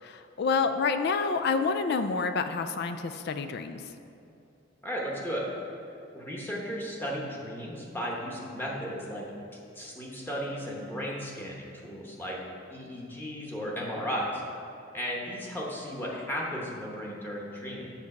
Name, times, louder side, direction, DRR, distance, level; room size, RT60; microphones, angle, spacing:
voice 1, 0.0-3.9, left 4 dB, 55° left, 9 dB, 0.4 m, -28 dB
voice 2, 4.8-5.5 6.1-9.3 9.7-12.4 12.7-14.4 14.9-17.9, equal, 10° left, -4 dB, 1.0 m, -35 dB
7.2 x 4.0 x 6.5 m, 2.8 s
head